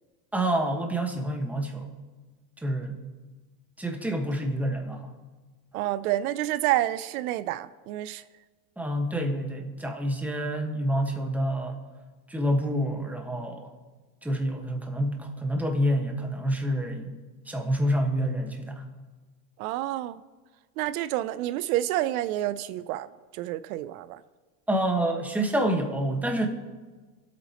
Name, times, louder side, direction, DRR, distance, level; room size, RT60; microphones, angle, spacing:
voice 1, 0.3-1.9 2.6-3.0 3.8-5.1 8.8-11.8 12.3-13.7 14.2-17.1 17.5-18.8 24.7-26.5, right 1 dB, 5° right, 3 dB, 1.3 m, -27 dB
voice 2, 5.7-8.2 19.6-20.2 20.8-23.1 23.3-24.2, right 14 dB, 80° right, 15 dB, 0.6 m, -28 dB
25.0 x 8.6 x 2.9 m, 1.3 s
supercardioid pair, 130°, 43 cm